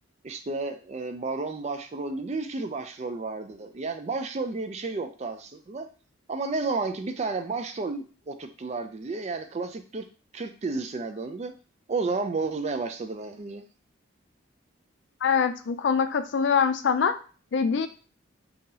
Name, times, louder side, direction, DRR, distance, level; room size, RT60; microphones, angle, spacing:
voice 1, 0.2-5.9 6.3-10.0 10.3-11.5 11.9-13.6, right 3 dB, 30° right, 7 dB, 0.4 m, -32 dB
voice 2, 15.2-17.1 17.5-17.9, left 6 dB, 55° left, 9 dB, 0.3 m, -24 dB
2.8 x 2.7 x 3.8 m, 0.37 s
head